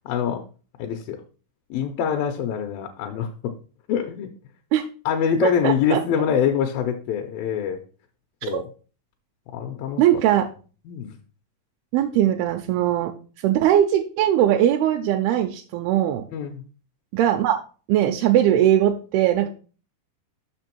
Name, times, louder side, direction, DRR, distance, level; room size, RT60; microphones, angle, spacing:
voice 1, 0.1-0.4 0.8-1.2 1.7-3.5 3.9-4.3 5.1-7.8 8.4-8.6 9.5-10.2 10.9-11.2 16.3-16.6, left 8 dB, 80° left, 4 dB, 2.3 m, -25 dB
voice 2, 5.4-6.0 10.0-10.5 11.9-13.1 13.4-16.2 17.1-17.6 17.9-19.5, right 11 dB, 85° right, 4 dB, 2.5 m, -20 dB
6.2 x 5.9 x 4.4 m, 0.37 s
omnidirectional pair, 4.4 m